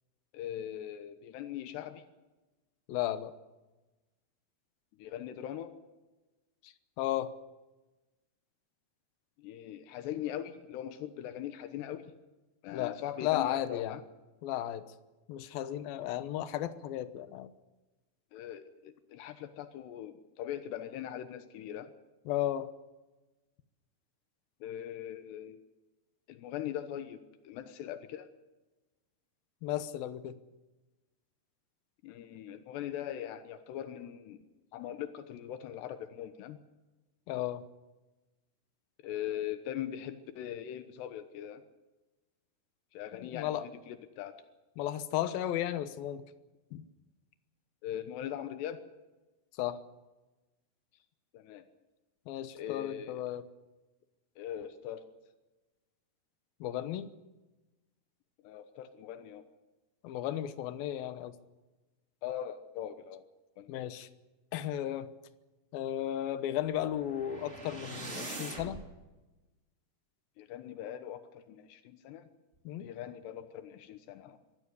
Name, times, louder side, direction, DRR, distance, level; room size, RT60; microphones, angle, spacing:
voice 1, 0.3-2.0 5.0-5.7 9.4-12.1 12.6-14.0 18.3-21.9 24.6-25.6 26.3-27.2 27.4-28.3 32.0-34.4 34.7-36.6 39.0-41.6 42.9-44.4 47.8-48.8 51.3-51.7 52.5-53.2 54.4-55.1 58.4-59.5 62.2-63.2 63.6-63.9 70.4-72.3 72.8-74.4, left 11 dB, 85° left, 9 dB, 3.3 m, -41 dB
voice 2, 2.9-3.3 6.6-7.3 12.7-14.0 14.4-14.9 15.3-17.5 22.3-22.7 29.6-30.4 37.3-37.6 43.2-43.7 44.8-46.2 46.7-46.8 49.6-49.8 52.3-53.4 56.6-57.1 60.0-61.3 63.7-64.1 64.5-65.1 65.7-68.8 72.7-72.9, left 12 dB, 70° left, 11 dB, 2.7 m, -34 dB
sound 1, 66.7-68.9, right 2 dB, 20° right, 2.8 m, -43 dB
23.5 x 16.0 x 8.3 m, 1.1 s
omnidirectional pair, 4.8 m